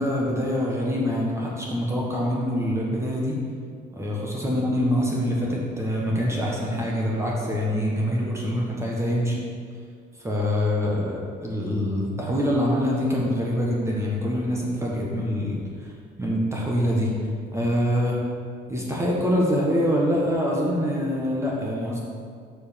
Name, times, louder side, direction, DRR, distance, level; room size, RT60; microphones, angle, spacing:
voice 1, 0.0-3.4 3.9-9.4 10.2-15.9 16.2-17.1 17.5-18.2 18.7-22.0, equal, 15° right, -3 dB, 1.3 m, -25 dB
6.6 x 5.0 x 5.2 m, 2.1 s
cardioid pair, 110°, 17 cm